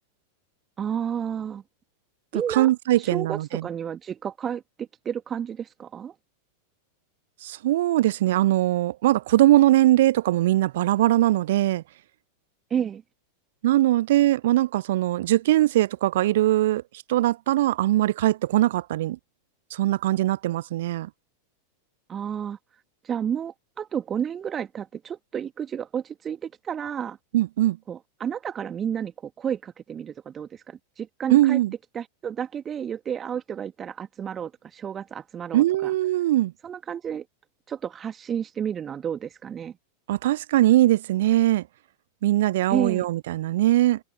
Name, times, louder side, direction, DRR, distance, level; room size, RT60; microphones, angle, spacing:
voice 1, 0.8-1.6 2.3-2.7 3.0-6.1 12.7-13.0 22.1-22.6 23.0-27.2 27.9-31.6 31.9-35.9 36.6-37.3 37.7-39.7 42.7-43.0, right 8 dB, 25° right, 2.0 m, -31 dB
voice 2, 2.3-3.6 7.4-11.8 13.6-16.8 17.1-19.2 19.7-21.1 27.3-27.8 31.3-31.7 35.5-36.5 40.1-41.6 42.2-44.0, right 15 dB, 55° right, 0.5 m, -21 dB
figure-of-eight pair, 90°, 0 cm